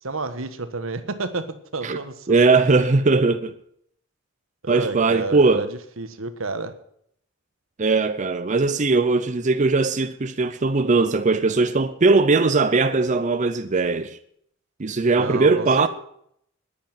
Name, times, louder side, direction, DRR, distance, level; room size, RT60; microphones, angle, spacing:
voice 1, 0.0-2.4 4.6-6.7 15.2-15.9, right 3 dB, 80° right, 1.4 m, -30 dB
voice 2, 2.3-3.5 4.7-5.7 7.8-14.2 14.8-15.9, right 3 dB, 40° right, 0.6 m, -19 dB
10.5 x 10.5 x 9.0 m
head